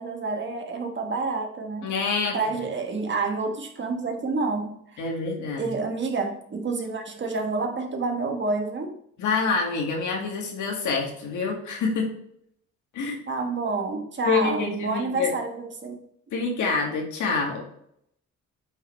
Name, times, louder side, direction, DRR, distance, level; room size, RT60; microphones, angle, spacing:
voice 1, 0.0-1.9 2.3-5.1 5.6-9.0 13.3-16.0, right 3 dB, 40° right, 3 dB, 1.4 m, -28 dB
voice 2, 1.8-2.4 5.0-5.7 9.2-12.1 12.9-13.2 14.3-15.3 16.3-17.6, left 4 dB, 75° left, 0 dB, 2.0 m, -26 dB
8.6 x 3.9 x 3.2 m, 0.71 s
cardioid pair, 90°, 30 cm